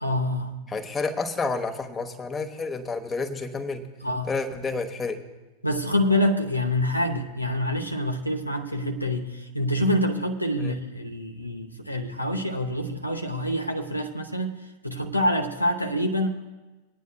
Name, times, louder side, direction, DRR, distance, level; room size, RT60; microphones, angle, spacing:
voice 1, 0.0-0.5 4.0-4.3 5.6-14.6 14.8-16.3, left 1 dB, 90° left, 4 dB, 0.8 m, -26 dB
voice 2, 0.7-3.8 4.2-5.2 10.6-10.7, left 3 dB, 15° left, 4 dB, 1.0 m, -30 dB
25.0 x 9.4 x 2.2 m, 1.2 s
figure-of-eight pair, 90°, 0 cm